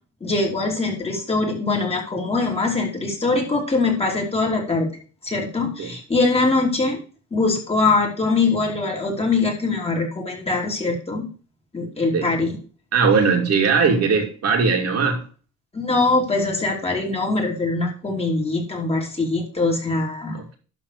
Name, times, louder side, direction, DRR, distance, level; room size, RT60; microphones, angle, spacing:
voice 1, 0.2-4.9 5.2-7.0 7.3-11.3 11.7-12.6 15.7-20.4, left 3 dB, 20° left, -1 dB, 3.2 m, -22 dB
voice 2, 12.9-15.2 20.3-20.6, right 5 dB, 60° right, 1 dB, 2.7 m, -19 dB
12.0 x 4.1 x 6.8 m, 0.38 s
cardioid pair, 125°, 29 cm